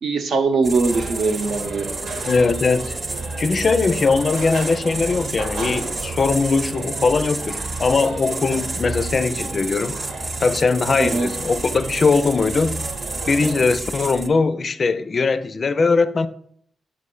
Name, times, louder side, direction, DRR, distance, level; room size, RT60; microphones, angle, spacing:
voice 1, 0.0-1.9 11.0-11.3, right 4 dB, 70° right, 0.9 m, -21 dB
sound 1, 0.6-14.3, right 2 dB, 30° right, 0.4 m, -30 dB
sound 2, 0.8-13.7, right 3 dB, 90° right, 1.4 m, -35 dB
voice 2, 2.3-3.0 3.4-10.0 10.4-12.8 13.3-16.3, left 4 dB, 40° left, 0.4 m, -20 dB
6.6 x 3.2 x 5.3 m
wide cardioid pair, 120°, 0 cm